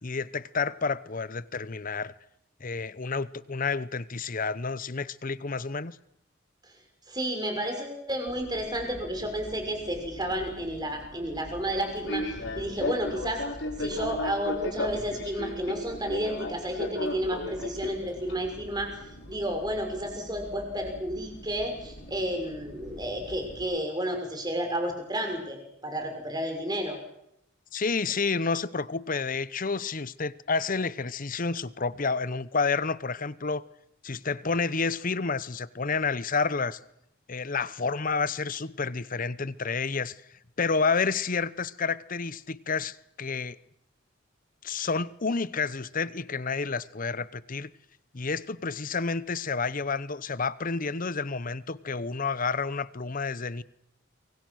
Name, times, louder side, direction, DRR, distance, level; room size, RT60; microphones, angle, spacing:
voice 1, 0.0-2.1 2.6-6.0 27.7-33.6 34.0-36.8 37.3-40.2 40.6-43.6 44.6-47.7 48.1-53.6, left 4 dB, 45° left, 0.9 m, -30 dB
voice 2, 7.1-12.2 12.5-13.4 13.8-18.9 19.3-27.0, equal, 20° right, 6.2 m, -31 dB
Fixed-wing aircraft airplane, 8.3-23.6, left 1 dB, 70° left, 4.5 m, -38 dB
27.5 x 24.0 x 6.4 m
head